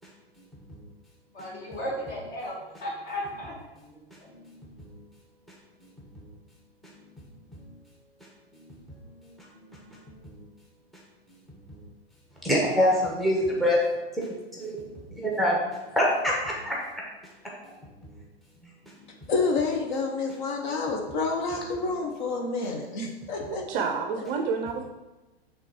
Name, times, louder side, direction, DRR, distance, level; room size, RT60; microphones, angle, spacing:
voice 1, 1.3-2.6 2.8-3.6 4.2-4.3, equal, 35° left, -3 dB, 2.1 m, -34 dB
voice 2, 12.4-13.8 14.2-14.3 14.6-14.8 15.1-15.6 15.9-16.8, equal, ahead, -3 dB, 1.1 m, -24 dB
voice 3, 19.3-23.8 24.2-24.3, left 3 dB, 50° left, 1 dB, 1.1 m, -29 dB
voice 4, 23.5-24.8, right 5 dB, 35° right, 4 dB, 0.6 m, -29 dB
5.9 x 3.5 x 4.8 m, 1.1 s
hypercardioid pair, 115°, 31 cm